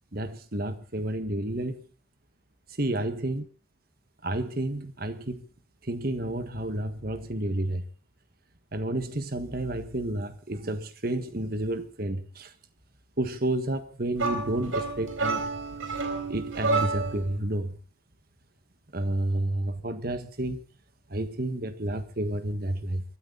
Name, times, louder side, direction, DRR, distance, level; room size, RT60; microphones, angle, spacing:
voice 1, 0.1-1.8 2.8-3.4 4.2-5.4 5.9-7.8 8.7-12.5 13.2-15.4 16.3-17.7 18.9-20.6 21.1-23.0, right 1 dB, 50° right, 1.5 m, -30 dB
sound 1, 14.2-17.3, right 3 dB, 85° right, 4.3 m, -29 dB
23.5 x 13.5 x 4.0 m
head